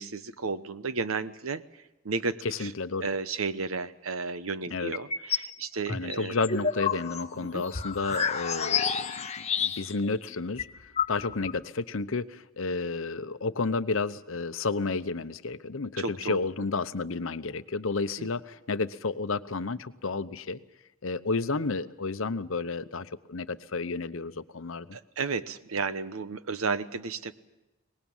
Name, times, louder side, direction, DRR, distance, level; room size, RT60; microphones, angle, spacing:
voice 1, 0.0-1.6 2.0-2.7 3.0-6.3 7.4-7.6 16.0-16.4 18.2-18.3 24.9-27.3, right 4 dB, 80° right, 13 dB, 1.0 m, -33 dB
voice 2, 2.4-3.1 4.7-4.9 5.9-10.7 11.1-20.6 21.0-25.0, left 3 dB, 70° left, 13 dB, 0.8 m, -31 dB
sound 1, 4.9-5.5 5.9-10.1 10.3-10.4 10.6-11.6, left 6 dB, 30° left, 1.1 m, -30 dB
24.0 x 20.0 x 7.3 m, 1.0 s
head